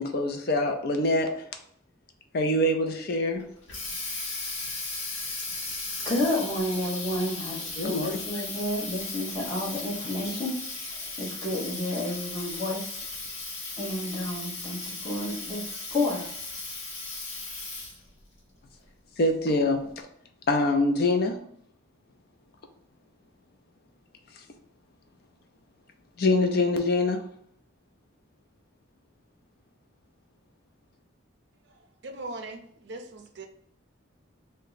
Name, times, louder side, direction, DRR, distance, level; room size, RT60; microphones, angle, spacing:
voice 1, 0.0-1.5 2.3-3.4 7.8-8.2 19.2-20.1 20.5-21.4 26.2-27.2, left 2 dB, 50° left, 5 dB, 0.4 m, -24 dB
Water tap faucet, 3.4-18.1, left 3 dB, 65° left, 0.9 m, -36 dB
voice 2, 6.0-13.0 13.8-16.3, left 1 dB, 20° left, -7 dB, 1.1 m, -31 dB
voice 3, 32.0-33.5, right 2 dB, 55° right, 5 dB, 0.4 m, -39 dB
2.7 x 2.1 x 3.9 m, 0.65 s
head